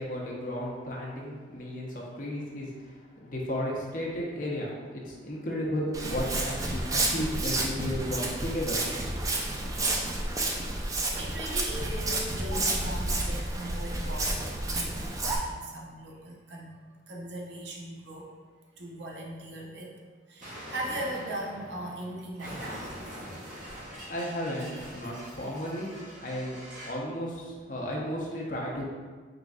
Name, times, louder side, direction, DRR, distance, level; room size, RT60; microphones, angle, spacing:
voice 1, 0.0-8.8 24.1-25.9 26.2-26.6 26.8-28.9, equal, 45° left, -2 dB, 0.7 m, -34 dB
Walk footsteps, 5.9-15.4, right 2 dB, 20° right, 0.4 m, -30 dB
voice 2, 10.8-18.3 18.8-20.0 20.3-23.2, right 1 dB, 75° right, -2 dB, 0.7 m, -39 dB
Explosion, 20.4-27.1, equal, 45° right, 1.1 m, -43 dB
3.9 x 3.9 x 2.4 m, 1.4 s
head